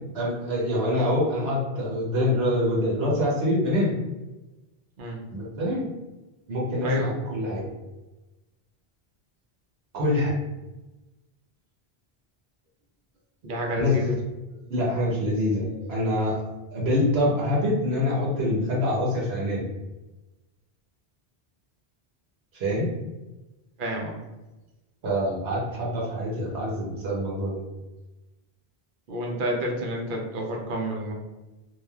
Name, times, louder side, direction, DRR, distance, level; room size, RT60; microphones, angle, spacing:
voice 1, 0.1-3.9 5.3-5.8 6.5-7.6 9.9-10.3 13.7-14.0 14.7-16.4 16.7-19.7 22.5-22.9 25.0-27.6, left 1 dB, 80° right, -4 dB, 1.1 m, -25 dB
voice 2, 13.4-14.2 15.6-15.9 23.8-24.2 29.1-31.1, right 1 dB, 60° right, 0 dB, 0.7 m, -30 dB
3.1 x 2.3 x 2.2 m, 1.1 s
omnidirectional pair, 1.0 m